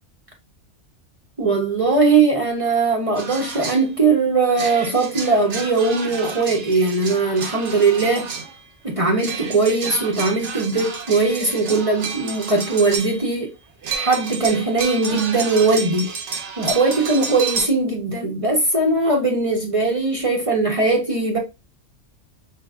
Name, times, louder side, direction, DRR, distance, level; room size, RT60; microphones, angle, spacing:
voice 1, 1.4-8.3 8.8-13.5 14.0-16.1 16.6-21.4, right 3 dB, 35° right, 0.7 m, -20 dB
sound 1, 3.1-3.9 4.5-8.6 9.2-13.4 13.8-17.7, right 5 dB, 70° right, 1.1 m, -31 dB
5.0 x 3.1 x 2.3 m
omnidirectional pair, 1.3 m